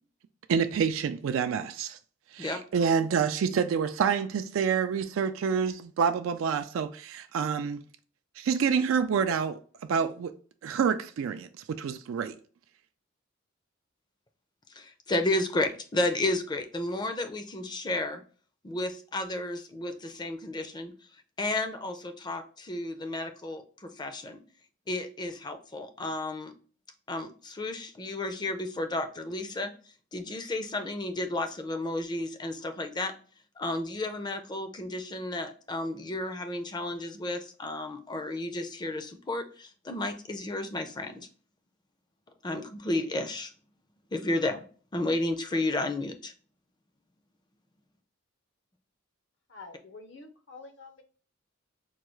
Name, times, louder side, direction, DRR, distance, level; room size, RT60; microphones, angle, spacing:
voice 1, 0.5-2.0 2.3-7.8 8.4-9.6 9.9-10.3 10.6-12.4, right 6 dB, 85° right, 0.3 m, -27 dB
voice 2, 14.7-18.2 18.6-20.9 21.4-24.4 24.9-26.5 27.1-29.7 30.1-33.1 33.6-41.3 42.4-43.5 44.1-44.6 44.9-46.3, left 2 dB, 20° left, 0.4 m, -32 dB
voice 3, 49.5-51.0, left 3 dB, 65° left, 0.7 m, -47 dB
4.5 x 2.3 x 3.1 m
head